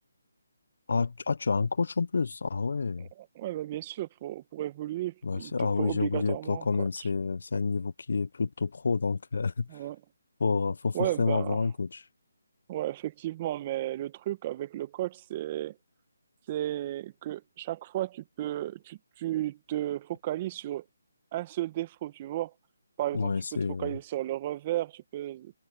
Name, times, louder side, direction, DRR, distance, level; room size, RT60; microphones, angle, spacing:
voice 1, 0.9-3.1 5.2-9.7 10.4-12.0 23.1-23.9, left 4 dB, 65° left, 0.7 m, -29 dB
voice 2, 3.0-6.7 7.0-7.1 9.7-10.0 10.9-11.6 12.7-15.7 16.5-20.8 21.3-22.5 23.0-23.4 23.8-25.5, right 14 dB, 30° right, 1.6 m, -34 dB
figure-of-eight pair, 160°, 0 cm